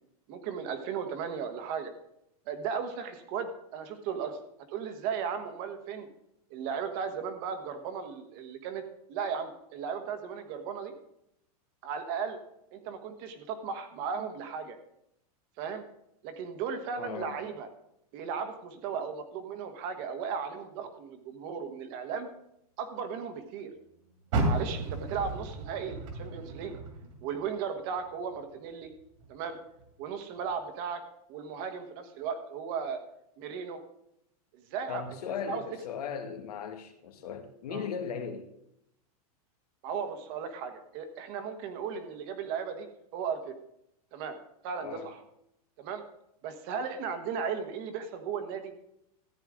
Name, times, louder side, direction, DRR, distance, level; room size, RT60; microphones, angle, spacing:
voice 1, 0.3-1.9 2.5-4.4 4.7-6.1 6.5-8.8 9.1-10.9 11.8-12.4 12.7-14.8 15.6-15.8 16.2-17.7 18.1-22.3 22.8-23.7 24.4-26.8 27.2-28.9 29.3-29.6 30.0-31.0 31.3-33.0 33.4-33.8 34.7-35.0 35.5-35.6 37.7-37.9 39.8-42.9 43.1-43.6 44.1-44.4 44.6-45.2 45.8-46.0 46.4-48.7, right 6 dB, 40° right, 1.3 m, -36 dB
voice 2, 17.0-17.4 34.9-38.5 44.8-45.1, left 7 dB, 90° left, 1.7 m, -37 dB
Car, 24.3-27.6 28.0-29.3 29.8-29.9 30.5-30.6, right 2 dB, 55° right, 2.4 m, -33 dB
14.0 x 9.1 x 3.7 m
supercardioid pair, 165°, 19 cm